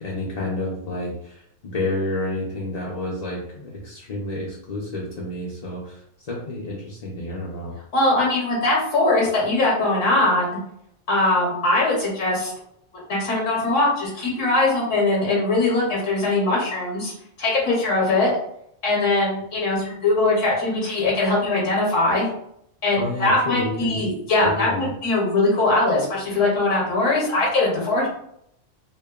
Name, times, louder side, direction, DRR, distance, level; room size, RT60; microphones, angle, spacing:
voice 1, 0.0-7.7 23.0-24.1 24.4-24.9, left 2 dB, 55° left, -5 dB, 0.4 m, -30 dB
voice 2, 7.9-10.6 11.1-12.5 13.1-17.1 17.4-18.3 18.8-22.3 22.8-28.1, left 2 dB, 75° left, -3 dB, 1.2 m, -21 dB
3.0 x 2.1 x 2.2 m, 0.72 s
omnidirectional pair, 1.3 m